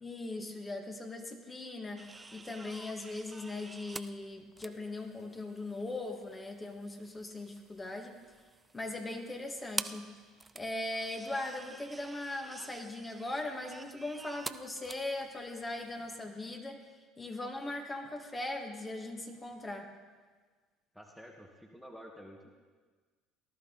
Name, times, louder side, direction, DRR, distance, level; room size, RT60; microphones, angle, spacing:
voice 1, 0.0-8.1 8.7-10.1 10.5-16.8 17.2-19.9, left 2 dB, 25° left, 3 dB, 1.8 m, -39 dB
sound 1, 2.0-16.2, right 3 dB, 20° right, 0.5 m, -48 dB
voice 2, 20.9-22.5, equal, ahead, 2 dB, 1.5 m, -51 dB
18.5 x 11.5 x 4.0 m, 1.4 s
hypercardioid pair, 75°, 0 cm